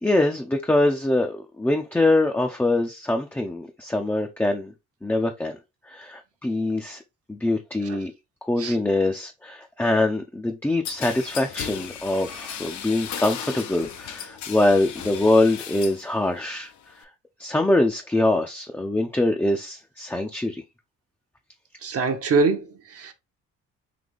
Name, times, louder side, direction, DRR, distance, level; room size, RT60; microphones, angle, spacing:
voice 1, 0.0-4.7 5.0-5.5 5.9-7.0 7.3-8.1 8.5-16.7 17.4-20.6, left 2 dB, 5° left, 0.5 m, -23 dB
sound 1, 10.8-16.1 16.4-17.0, left 8 dB, 70° left, 0.7 m, -36 dB
voice 2, 21.8-23.1, right 4 dB, 50° right, 0.8 m, -24 dB
3.9 x 2.8 x 3.3 m
cardioid pair, 90°, 30 cm